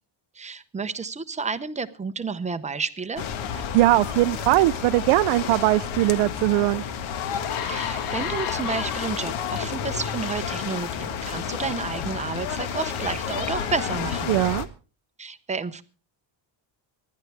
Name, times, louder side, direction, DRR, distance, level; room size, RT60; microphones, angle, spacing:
voice 1, 0.4-3.2 7.6-14.3 15.2-15.8, right 4 dB, 15° right, 12 dB, 0.6 m, -31 dB
sound 1, 3.2-14.6, left 7 dB, 70° left, 1.7 m, -31 dB
voice 2, 3.7-6.8 14.3-14.7, right 19 dB, 90° right, 10 dB, 0.6 m, -20 dB
sound 2, 6.7-6.8 7.2-9.6 10.3-10.5, left 8 dB, 85° left, 2.6 m, -33 dB
25.0 x 11.5 x 3.4 m, 0.34 s
cardioid pair, 175°, 49 cm